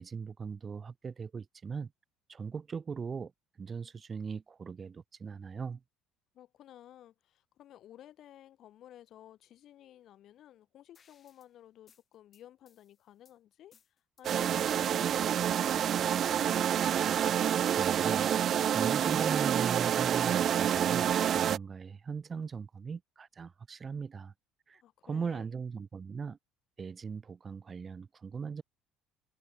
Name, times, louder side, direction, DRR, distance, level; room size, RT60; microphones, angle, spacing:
voice 1, 0.0-1.9 2.3-3.3 3.6-5.8 17.8-18.3 18.7-24.3 24.7-26.4 26.8-28.6, right 5 dB, 30° right, 1.3 m, -39 dB
voice 2, 6.3-13.8 14.2-16.8 24.7-25.5, left 12 dB, 55° left, 2.5 m, -55 dB
sound 1, 10.9-11.5 11.9-13.4 13.7-14.2 14.6-15.2 15.6-16.5 16.9-18.1, left 7 dB, 35° left, 5.0 m, -65 dB
sound 2, 14.2-21.6, right 9 dB, 50° right, 0.5 m, -28 dB
Wind instrument woodwind instrument, 14.8-19.0, left 1 dB, 10° left, 7.8 m, -59 dB
cardioid pair, 105°, 0 cm